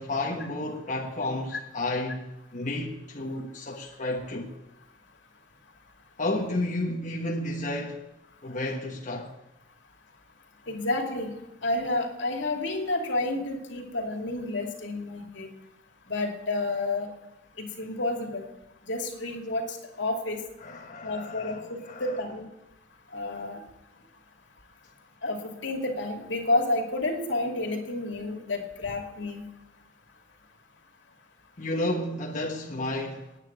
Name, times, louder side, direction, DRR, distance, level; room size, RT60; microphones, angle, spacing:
voice 1, 0.0-4.5 6.2-8.0 8.4-9.3 20.6-22.2 31.6-33.2, left 1 dB, 40° left, 1.4 m, -32 dB
voice 2, 10.7-11.3 11.6-15.5 16.1-17.1 17.6-18.5 18.9-20.4 21.0-22.5 23.1-23.6 25.2-29.4, left 2 dB, 70° left, 2.6 m, -30 dB
9.8 x 9.6 x 8.7 m
head